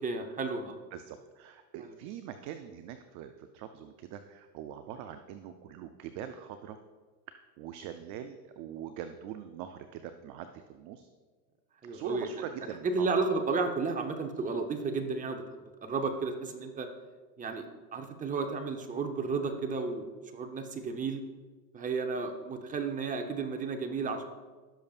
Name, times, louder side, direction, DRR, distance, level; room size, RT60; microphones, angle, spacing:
voice 1, 0.0-0.8 11.8-12.3 12.8-15.4 15.8-16.9 17.4-17.7 17.9-20.0 20.3-21.2 21.7-24.3, right 4 dB, 15° right, 5 dB, 0.8 m, -32 dB
voice 2, 0.9-6.8 7.6-11.1 11.9-13.1, right 9 dB, 40° right, 8 dB, 0.5 m, -43 dB
16.0 x 6.7 x 2.4 m, 1.4 s
supercardioid pair, 125°, 50 cm